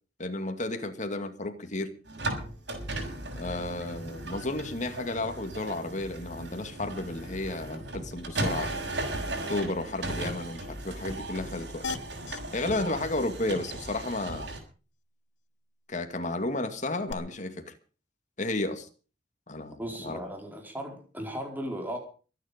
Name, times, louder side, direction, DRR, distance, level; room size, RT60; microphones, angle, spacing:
voice 1, 0.2-1.9 3.4-8.7 9.5-11.9 12.5-14.6 15.9-17.7 18.4-18.9 19.5-20.2, left 2 dB, 40° left, 7 dB, 2.4 m, -32 dB
sound 1, 2.1-14.6, right 2 dB, 70° right, 6.4 m, -36 dB
sound 2, 11.8-12.4 12.7-12.8 13.1-13.3 13.6-13.7 17.1-17.2, left 5 dB, 70° left, 1.0 m, -37 dB
voice 2, 19.8-22.0, equal, 10° right, 2 dB, 4.8 m, -36 dB
23.0 x 10.0 x 5.3 m, 0.38 s
head